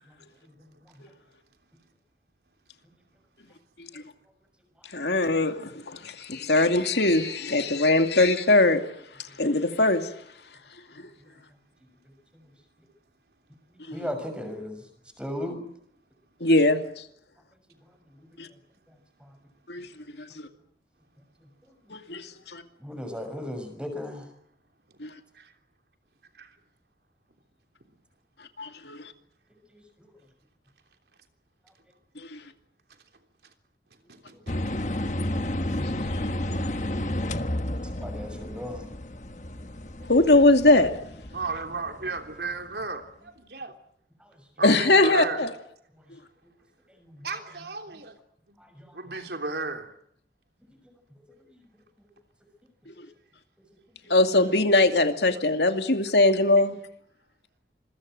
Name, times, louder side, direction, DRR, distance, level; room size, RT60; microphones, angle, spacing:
voice 1, 0.4-1.0 11.2-11.4 12.4-12.5 13.7-14.8 15.2-15.6 18.2-18.3 19.2-19.3 22.8-24.3 29.7-30.1 38.0-38.9 44.2-44.3 47.0-47.3 48.6-48.9 51.2-51.6, left 1 dB, 5° right, 6.3 m, -37 dB
voice 2, 4.9-8.8 9.4-10.1 11.0-11.1 13.9-14.0 16.4-17.0 18.4-18.5 19.7-19.9 20.2-20.5 21.9-22.6 25.0-25.1 28.6-29.0 32.2-32.4 35.8-36.3 40.1-40.9 44.6-45.5 52.9-53.0 54.1-56.8, left 2 dB, 75° left, 2.5 m, -21 dB
voice 3, 34.1-34.8 40.0-40.1 41.3-43.7 44.6-45.4 47.2-48.1 48.5-48.6 48.9-49.9, right 3 dB, 70° right, 3.3 m, -35 dB
sound 1, 34.5-42.5, left 1 dB, 45° left, 1.3 m, -31 dB
27.0 x 22.5 x 7.8 m
head